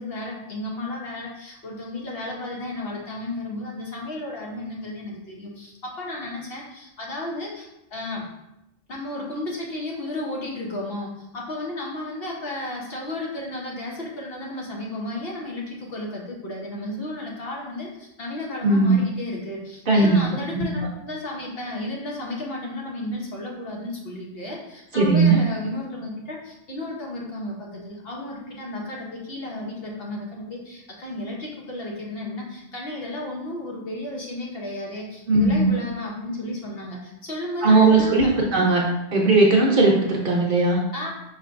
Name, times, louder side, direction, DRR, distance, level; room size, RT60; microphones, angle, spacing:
voice 1, 0.0-8.2 8.9-38.7 40.9-41.1, left 1 dB, 55° left, -2 dB, 1.1 m, -33 dB
voice 2, 18.6-19.0 19.9-20.2 20.5-20.7 24.9-25.4 35.3-35.7 37.6-38.8 39.1-40.8, right 3 dB, 50° right, -2 dB, 0.8 m, -18 dB
5.6 x 3.2 x 2.5 m, 0.89 s
omnidirectional pair, 1.2 m